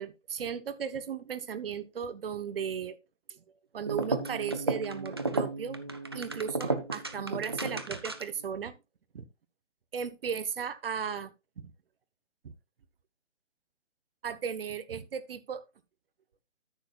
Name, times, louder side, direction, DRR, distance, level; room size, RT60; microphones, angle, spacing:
voice 1, 0.0-3.0 3.3-3.4 3.7-5.8 6.1-8.7 9.1-9.3 9.9-11.7 12.4-12.5 14.2-15.6, right 7 dB, 50° right, 1.1 m, -36 dB
sound 1, 3.8-8.4, right 2 dB, 20° right, 0.4 m, -33 dB
13.0 x 6.5 x 2.4 m
figure-of-eight pair, 145°, 37 cm